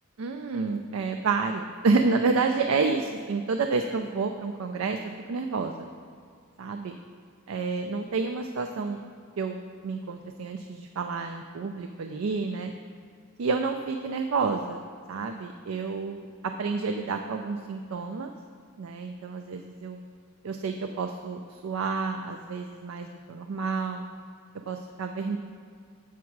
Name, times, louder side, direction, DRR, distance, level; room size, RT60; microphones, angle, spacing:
voice 1, 0.2-5.0 5.3-5.9 6.6-6.9 7.5-9.0 9.4-12.7 13.4-14.8 15.1-18.3 18.8-20.0 20.4-24.0 24.7-25.4, right 4 dB, 85° right, 5 dB, 0.4 m, -29 dB
7.2 x 6.0 x 4.6 m, 2.2 s
head